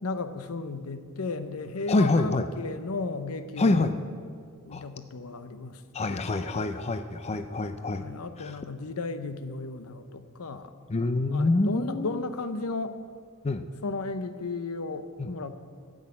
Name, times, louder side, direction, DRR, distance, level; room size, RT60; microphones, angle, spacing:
voice 1, 0.0-3.9 4.7-5.8 6.1-6.6 8.0-10.7 11.3-13.0 13.8-15.5, left 3 dB, 80° left, 10 dB, 0.7 m, -34 dB
voice 2, 1.9-2.5 3.6-3.9 4.7-4.9 5.9-8.1 8.4-8.6 10.9-12.2 13.4-13.6 15.2-15.3, left 2 dB, 30° left, 9 dB, 0.4 m, -26 dB
12.5 x 6.4 x 8.6 m, 2.1 s
head